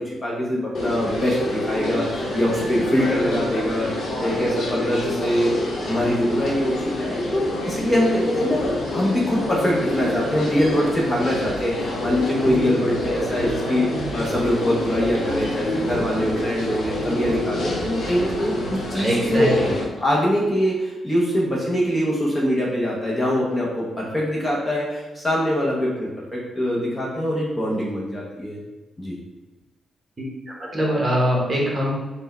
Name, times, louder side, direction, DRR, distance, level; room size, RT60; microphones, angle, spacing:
voice 1, 0.0-3.9 4.2-5.5 5.8-13.9 14.1-19.5 20.0-28.6 29.0-29.2, equal, 15° left, -4 dB, 0.6 m, -23 dB
sound 1, 0.7-19.8, left 1 dB, 60° left, 0.9 m, -27 dB
sound 2, 11.4-18.4, right 3 dB, 85° right, 0.4 m, -39 dB
voice 2, 19.0-19.7 30.2-30.3 30.7-31.9, equal, 25° right, -4 dB, 0.9 m, -22 dB
4.3 x 2.1 x 4.1 m, 1.1 s
wide cardioid pair, 170°, 0 cm